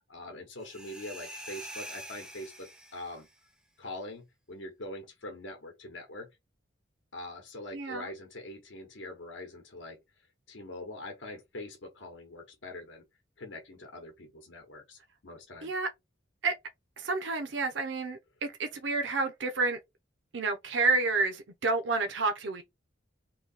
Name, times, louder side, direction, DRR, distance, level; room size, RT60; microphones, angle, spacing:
voice 1, 0.1-3.3 3.8-6.3 7.1-10.0 10.5-13.0 13.4-15.7, left 1 dB, 70° left, 0.9 m, -43 dB
sound 1, 0.6-3.3, right 1 dB, 5° right, 0.6 m, -45 dB
voice 2, 7.7-8.1 15.6-15.9 16.4-16.6 17.0-19.8 20.3-22.6, right 3 dB, 70° right, 0.7 m, -29 dB
3.1 x 2.7 x 4.0 m
head